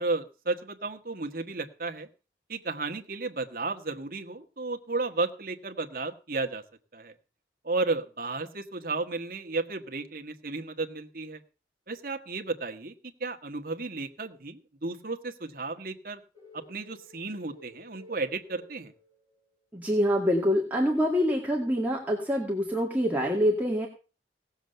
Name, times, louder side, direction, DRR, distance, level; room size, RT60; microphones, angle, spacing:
voice 1, 0.0-2.1 2.5-6.6 6.9-7.1 7.6-11.4 11.9-12.9 13.2-16.2 16.5-18.9, right 3 dB, 50° right, 6 dB, 1.5 m, -33 dB
sound 1, 16.3-19.5, left 1 dB, 20° left, 6.6 m, -53 dB
voice 2, 19.7-23.9, equal, 10° right, -2 dB, 2.0 m, -25 dB
17.5 x 7.3 x 6.7 m, 0.35 s
head